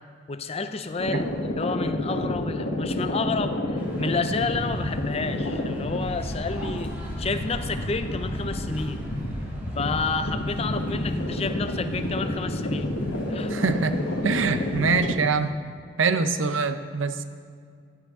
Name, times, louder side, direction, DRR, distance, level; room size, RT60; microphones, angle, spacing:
voice 1, 0.3-6.9 7.2-9.0 9.8-12.9 13.3-13.5, left 4 dB, 30° left, 9 dB, 0.5 m, -30 dB
sound 1, 1.0-15.1, left 1 dB, 80° left, 1.3 m, -29 dB
Male speech man speaking, 3.8-15.1, equal, 10° right, 2.2 m, -45 dB
voice 2, 13.5-13.9 14.2-15.6 16.0-17.2, right 4 dB, 85° right, 10 dB, 0.6 m, -24 dB
14.5 x 10.0 x 3.7 m, 2.2 s
head